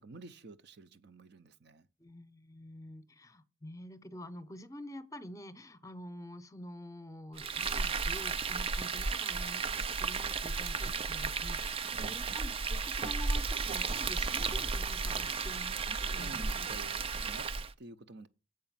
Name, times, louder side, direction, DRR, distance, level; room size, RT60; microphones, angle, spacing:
voice 1, 0.0-1.9 11.9-12.2 16.1-18.3, right 3 dB, 60° right, 0.7 m, -50 dB
voice 2, 2.0-16.7, left 1 dB, 15° left, 0.8 m, -48 dB
Frying (food), 7.4-17.7, right 4 dB, 30° right, 0.4 m, -34 dB
7.8 x 5.1 x 7.3 m
head